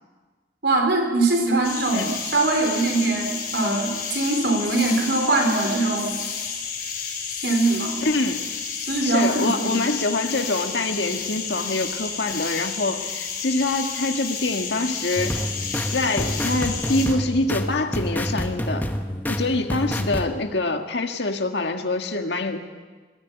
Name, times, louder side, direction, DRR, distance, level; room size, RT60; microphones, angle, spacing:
voice 1, 0.6-6.2 7.4-8.0 8.8-9.9, right 2 dB, 75° right, 3 dB, 4.1 m, -22 dB
sound 1, 1.6-17.1, left 6 dB, 55° left, 5.9 m, -31 dB
voice 2, 8.0-8.6 9.0-15.3 15.9-18.9 19.3-22.6, left 2 dB, 80° left, 5 dB, 1.7 m, -25 dB
sound 2, 15.2-20.3, equal, 10° left, 1.1 m, -28 dB
20.5 x 14.5 x 9.1 m, 1.4 s
head